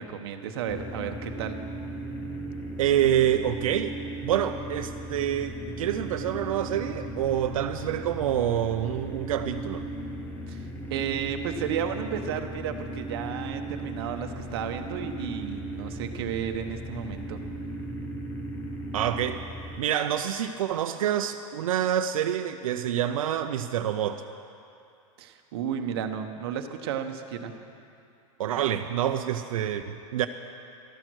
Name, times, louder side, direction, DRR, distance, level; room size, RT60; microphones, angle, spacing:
voice 1, 0.0-1.9 10.5-17.4 25.2-27.5, right 8 dB, 45° right, 5 dB, 1.0 m, -33 dB
sound 1, 0.7-19.8, right 1 dB, 10° left, 0.6 m, -37 dB
voice 2, 2.8-4.0 4.2-9.9 18.9-19.4 19.8-24.2 28.4-30.3, right 10 dB, 80° right, 7 dB, 0.6 m, -27 dB
13.5 x 13.0 x 6.2 m, 2.6 s
supercardioid pair, 180°, 17 cm